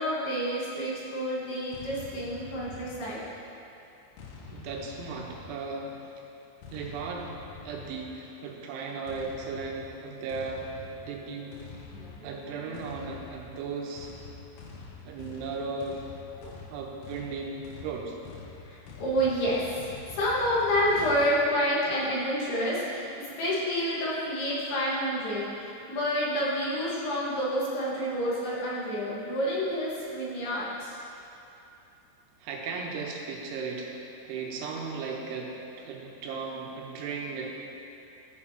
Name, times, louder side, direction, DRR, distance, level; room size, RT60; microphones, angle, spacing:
voice 1, 0.0-3.2 11.9-12.3 16.4-16.6 18.7-23.1 23.4-30.9, equal, 65° left, -7 dB, 3.1 m, -29 dB
sound 1, 1.7-3.5 4.2-5.9 6.6-8.3 9.1-21.3, left 5 dB, 85° left, 3.4 m, -46 dB
voice 2, 4.5-6.1 6.7-7.4 7.6-11.6 12.2-14.1 15.0-16.0 16.7-18.2 32.4-37.5, right 4 dB, 85° right, -1 dB, 3.3 m, -36 dB
15.0 x 7.1 x 2.8 m, 2.7 s
omnidirectional pair, 5.5 m